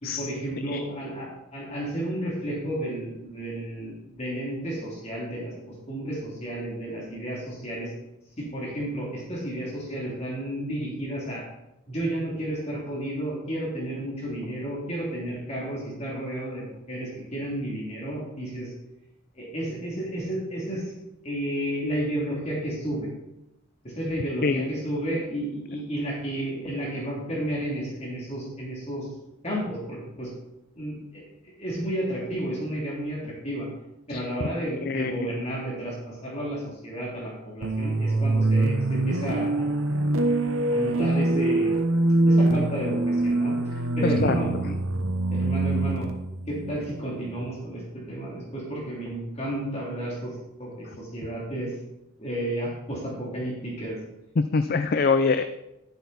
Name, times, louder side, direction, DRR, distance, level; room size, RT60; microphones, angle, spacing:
voice 1, 0.0-5.5 5.9-7.9 8.4-11.4 11.9-18.7 19.3-20.9 21.2-23.1 23.8-29.1 29.4-30.3 30.8-33.7 34.1-39.9 40.7-41.7 42.3-43.5 44.0-44.5 45.3-46.1 46.5-47.8 48.1-50.3 50.6-51.7 52.2-54.0, right 1 dB, 30° left, -4 dB, 3.0 m, -32 dB
voice 2, 34.8-35.2 44.0-44.3 44.7-44.8 54.4-55.4, left 4 dB, 45° left, 10 dB, 0.4 m, -24 dB
sound 1, 37.6-47.5, right 2 dB, 85° right, 1.0 m, -24 dB
11.5 x 8.0 x 4.1 m, 0.89 s
head